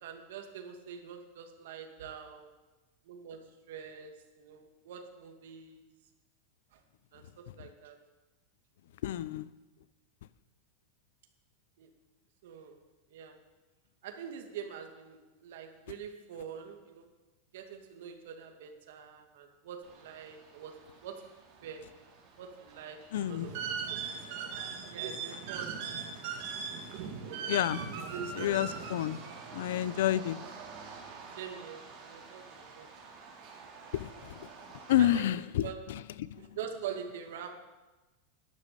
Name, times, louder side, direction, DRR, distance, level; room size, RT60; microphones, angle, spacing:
voice 1, 0.0-2.5 3.1-5.9 6.7-6.8 7.1-8.0 11.8-11.9 12.4-12.8 13.1-13.4 14.0-17.1 17.5-21.3 21.6-21.9 22.4-23.5 23.9-24.0 24.5-25.8 27.0-27.2 27.9-28.9 31.4-32.9 35.0-35.3 35.6-35.8 36.4-37.6, right 7 dB, 70° right, 4 dB, 2.1 m, -45 dB
voice 2, 9.0-9.5 23.1-23.5 27.5-27.8 28.4-29.2 29.5-30.4 33.9-34.3 34.9-36.5, left 12 dB, 75° left, 18 dB, 0.6 m, -30 dB
sound 1, 19.8-35.2, right 5 dB, 35° right, 2.8 m, -51 dB
sound 2, 23.1-29.4, right 6 dB, 55° right, 2.4 m, -39 dB
11.5 x 10.5 x 6.9 m, 1.1 s
supercardioid pair, 165°, 0 cm